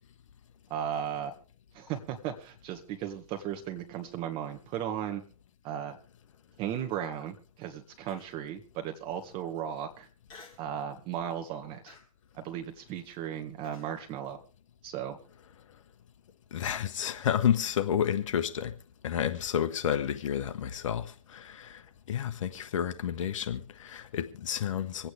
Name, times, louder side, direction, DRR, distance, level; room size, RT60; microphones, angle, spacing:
voice 1, 0.7-1.3 1.7-5.2 5.6-6.0 6.6-10.1 10.6-12.0 12.4-14.4 14.8-15.2, right 9 dB, 30° right, 1.8 m, -36 dB
Human voice, 8.1-8.5 9.1-9.2 10.3-10.7 11.2-11.4 11.9-13.9, left 4 dB, 25° left, 3.3 m, -54 dB
voice 2, 16.5-18.7 19.0-21.8 22.1-25.1, left 9 dB, 55° left, 1.2 m, -30 dB
26.0 x 8.9 x 3.4 m
hypercardioid pair, 135°, 19 cm